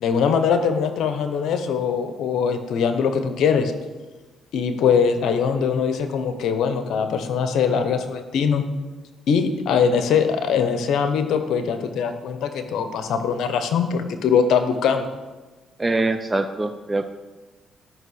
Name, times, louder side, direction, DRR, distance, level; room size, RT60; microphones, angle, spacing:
voice 1, 0.0-3.7 4.5-8.6 9.3-15.1, left 6 dB, 75° left, 8 dB, 1.0 m, -22 dB
voice 2, 15.8-17.1, right 2 dB, 20° right, 7 dB, 0.6 m, -23 dB
12.5 x 5.6 x 6.5 m, 1.2 s
cardioid pair, 90°, 0 cm